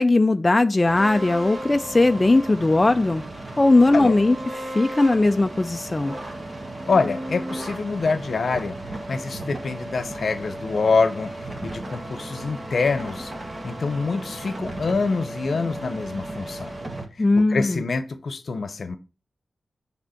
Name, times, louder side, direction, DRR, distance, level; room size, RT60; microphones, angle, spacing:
voice 1, 0.0-3.2 3.6-6.1 17.2-17.8, left 2 dB, 25° left, 0.3 m, -19 dB
sound 1, 0.9-17.0, right 1 dB, 35° right, 1.7 m, -35 dB
voice 2, 6.9-8.8 9.1-11.3 11.6-13.3 13.6-16.7 17.4-19.0, left 4 dB, 60° left, 0.8 m, -25 dB
9.2 x 3.5 x 4.4 m
wide cardioid pair, 125°, 0 cm